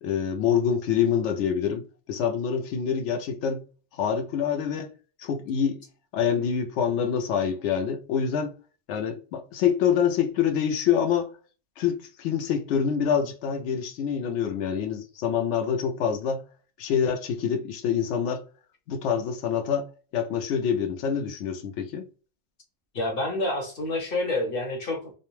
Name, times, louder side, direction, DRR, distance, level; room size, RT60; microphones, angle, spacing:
voice 1, 0.0-1.8 2.1-3.6 3.9-4.9 5.2-5.8 6.1-8.5 8.9-11.3 11.8-16.4 16.8-18.4 18.9-19.9 20.1-22.1, left 8 dB, 80° left, 0.9 m, -26 dB
voice 2, 22.9-25.1, left 2 dB, 55° left, 0.9 m, -28 dB
2.4 x 2.2 x 3.0 m
omnidirectional pair, 1.2 m